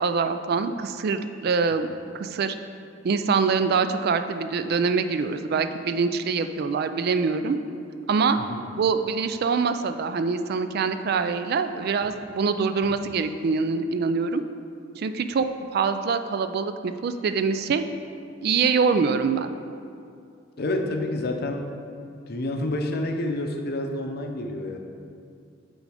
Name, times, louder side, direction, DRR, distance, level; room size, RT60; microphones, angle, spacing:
voice 1, 0.0-1.9 2.1-2.6 3.0-7.6 8.1-8.4 8.8-14.4 15.0-15.5 15.7-17.8 18.4-19.5, right 5 dB, 55° right, 9 dB, 0.3 m, -24 dB
voice 2, 20.6-21.7 22.3-24.8, left 1 dB, 55° left, 3 dB, 0.6 m, -28 dB
8.4 x 3.9 x 4.9 m, 2.4 s
head